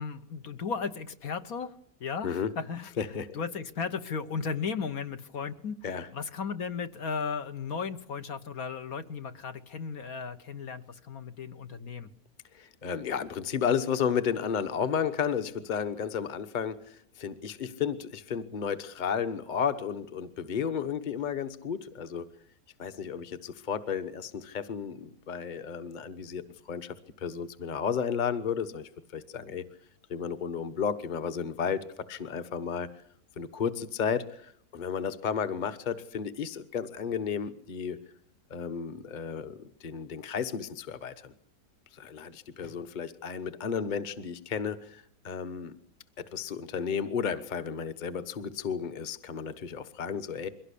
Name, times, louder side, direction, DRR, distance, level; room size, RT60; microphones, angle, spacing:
voice 1, 0.0-1.7 2.0-3.1 3.3-12.1, left 5 dB, 65° left, 8 dB, 1.6 m, -35 dB
voice 2, 3.0-3.3 5.8-6.1 12.5-22.3 22.8-29.7 30.1-32.9 33.4-38.0 38.5-41.3 41.9-45.8 46.2-50.5, left 7 dB, 30° left, 10 dB, 1.2 m, -33 dB
23.0 x 17.5 x 8.5 m, 0.67 s
omnidirectional pair, 1.7 m